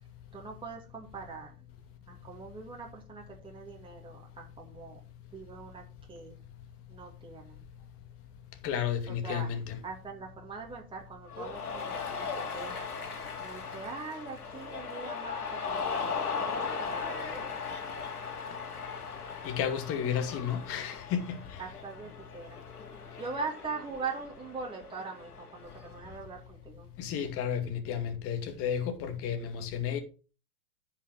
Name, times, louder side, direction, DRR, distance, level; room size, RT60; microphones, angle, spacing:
voice 1, 0.3-1.5 2.1-5.0 5.3-6.3 6.9-7.6 9.1-9.5 9.8-12.3 12.5-12.9 13.4-17.4 21.6-22.6 23.2-26.9, right 4 dB, 10° right, 2.7 m, -42 dB
voice 2, 8.6-9.8 19.4-21.6 27.0-30.0, left 8 dB, 30° left, 2.3 m, -32 dB
Cheering, 11.3-26.1, left 5 dB, 80° left, 2.9 m, -38 dB
10.0 x 6.0 x 6.2 m
hypercardioid pair, 115°, 45 cm